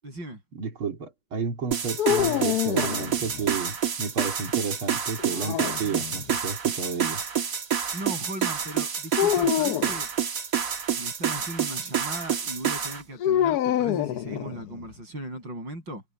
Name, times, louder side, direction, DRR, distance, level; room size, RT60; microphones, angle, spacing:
voice 1, 0.0-0.4 7.9-10.1 10.9-16.0, right 1 dB, 60° right, 8.8 m, -37 dB
voice 2, 0.6-7.2, right 5 dB, 75° right, 3.7 m, -32 dB
sound 1, 1.7-13.0, right 8 dB, 45° right, 1.7 m, -28 dB
sound 2, 2.0-3.5 5.2-6.3 9.2-10.0 13.2-14.9, left 11 dB, 70° left, 0.9 m, -26 dB
omnidirectional pair, 2.3 m